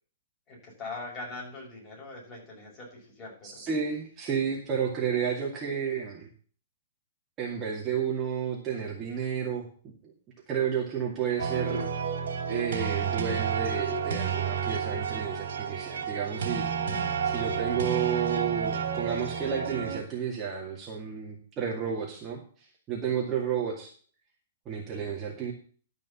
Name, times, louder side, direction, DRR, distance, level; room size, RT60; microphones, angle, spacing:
voice 1, 0.5-3.6 23.3-23.4, left 3 dB, 20° left, -3 dB, 6.3 m, -42 dB
voice 2, 3.4-6.3 7.4-10.1 10.5-11.9 12.4-16.7 17.2-23.9 24.7-25.5, right 7 dB, 20° right, -2 dB, 2.3 m, -31 dB
sound 1, 11.4-20.0, right 6 dB, 75° right, 3.1 m, -31 dB
12.5 x 5.3 x 7.1 m, 0.43 s
hypercardioid pair, 155°, 0 cm